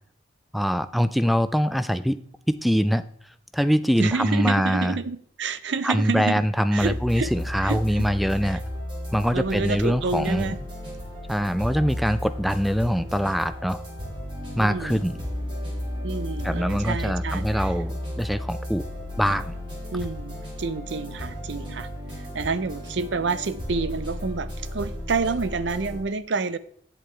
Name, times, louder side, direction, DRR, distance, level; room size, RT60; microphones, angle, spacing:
voice 1, 0.5-2.2 2.5-3.0 3.5-5.0 5.8-8.6 9.1-10.6 11.3-13.8 14.6-15.2 16.4-18.9 19.2-19.5, equal, ahead, 0.3 m, -23 dB
voice 2, 4.0-6.4 6.7-7.3 7.6-8.1 8.4-8.6 9.3-10.6 14.6-15.0 16.0-17.7 19.9-21.9 22.2-26.6, right 4 dB, 65° right, 0.5 m, -29 dB
sound 1, 6.8-26.0, left 1 dB, 25° right, 3.0 m, -33 dB
8.6 x 7.8 x 3.3 m
head